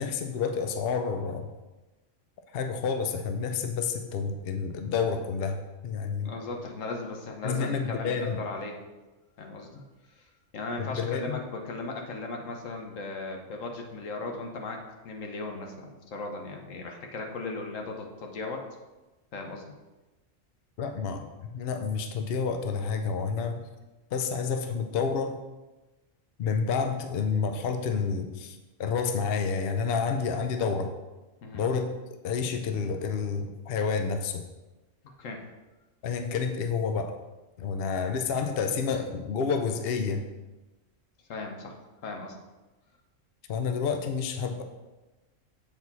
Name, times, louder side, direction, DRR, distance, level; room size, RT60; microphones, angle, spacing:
voice 1, 0.0-1.5 2.5-6.3 7.4-8.4 10.8-11.4 20.8-23.6 24.1-25.4 26.4-31.0 31.5-31.9 32.2-34.4 36.0-37.2 37.6-40.3 43.5-44.6, left 5 dB, 55° left, 6 dB, 0.8 m, -29 dB
voice 2, 6.2-8.8 9.4-9.8 10.2-18.6 19.3-19.7 31.4-31.6 35.0-35.4 41.3-41.8 42.0-42.3, left 3 dB, 80° left, 2 dB, 1.3 m, -37 dB
7.7 x 4.7 x 4.0 m, 1.1 s
omnidirectional pair, 1.3 m